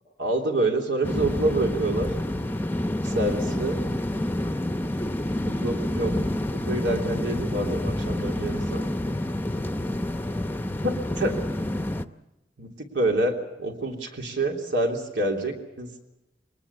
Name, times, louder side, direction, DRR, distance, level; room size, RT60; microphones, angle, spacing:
voice 1, 0.2-2.1 3.0-3.8 5.4-6.1 6.5-8.9 10.8-11.3 12.6-15.9, right 2 dB, 85° right, 2 dB, 3.2 m, -27 dB
sound 1, 1.0-12.1, left 1 dB, 10° left, 0.7 m, -28 dB
22.0 x 19.5 x 7.2 m, 0.96 s
head